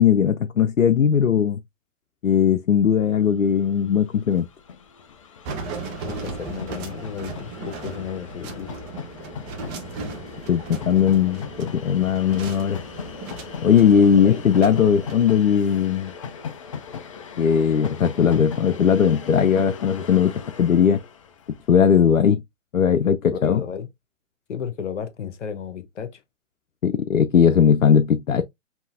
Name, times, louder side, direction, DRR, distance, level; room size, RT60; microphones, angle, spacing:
voice 1, 0.0-1.6 2.2-4.5 10.5-12.8 13.6-16.1 17.4-21.0 21.7-22.4 22.7-23.6 26.8-28.4, left 8 dB, 90° left, 0.6 m, -18 dB
Train, 3.3-3.4 3.6-22.0, left 6 dB, 25° left, 0.4 m, -39 dB
sound 1, 5.4-15.2, right 3 dB, 15° right, 0.7 m, -36 dB
voice 2, 6.0-8.7 14.2-14.4 23.3-23.9 24.5-26.2, left 7 dB, 65° left, 1.0 m, -33 dB
5.5 x 2.8 x 2.5 m
figure-of-eight pair, 125°, 39 cm